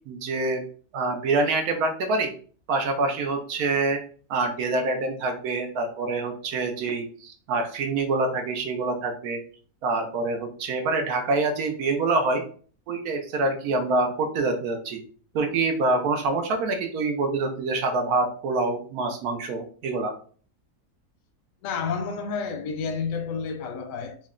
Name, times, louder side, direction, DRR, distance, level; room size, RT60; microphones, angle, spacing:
voice 1, 0.1-0.6 0.9-2.3 2.7-4.0 4.3-9.4 9.8-12.4 12.9-15.0 15.3-20.1, right 3 dB, 80° right, 1.1 m, -26 dB
voice 2, 21.6-24.3, left 5 dB, 70° left, 0.9 m, -30 dB
3.9 x 2.1 x 3.6 m
omnidirectional pair, 1.6 m